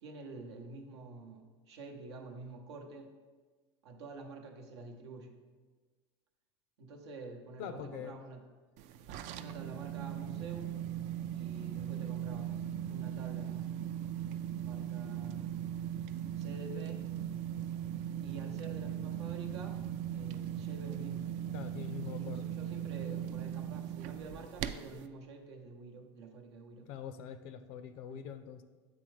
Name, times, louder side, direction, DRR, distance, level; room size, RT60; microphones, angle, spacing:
voice 1, 0.0-3.1 3.8-5.4 6.8-8.4 9.3-10.9 11.3-13.8 14.6-15.5 16.3-17.0 18.2-19.8 20.1-21.4 22.0-26.9 28.1-28.2, right 3 dB, 85° right, 3 dB, 0.8 m, -48 dB
voice 2, 7.6-8.2 21.5-22.6 26.9-28.6, left 8 dB, 65° left, 11 dB, 0.5 m, -44 dB
sound 1, 8.8-25.1, right 10 dB, 60° right, 0.4 m, -39 dB
8.5 x 3.5 x 3.2 m, 1.4 s
supercardioid pair, 95°, 14 cm